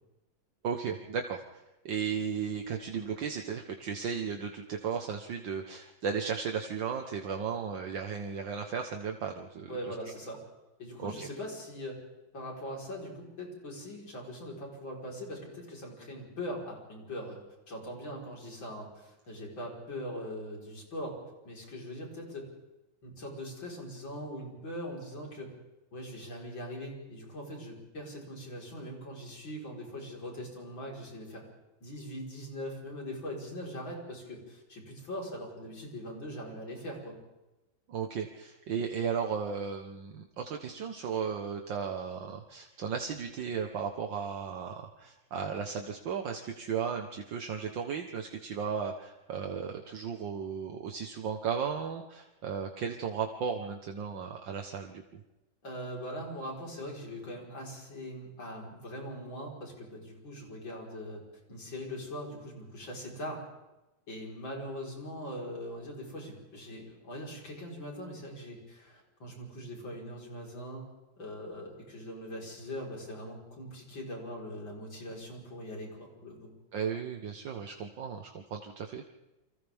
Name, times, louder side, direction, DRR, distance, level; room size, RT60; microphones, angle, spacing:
voice 1, 0.6-10.0 11.0-11.3 37.9-55.2 76.7-79.1, right 6 dB, 70° right, 3 dB, 1.9 m, -35 dB
voice 2, 9.7-10.4 10.8-12.0 12.3-17.4 17.7-21.2 21.5-22.5 23.0-25.5 25.9-31.4 31.8-37.2 55.6-63.4 64.1-70.9 71.2-76.5, equal, 70° left, -1 dB, 5.4 m, -41 dB
29.5 x 24.5 x 3.6 m, 1.0 s
omnidirectional pair, 2.2 m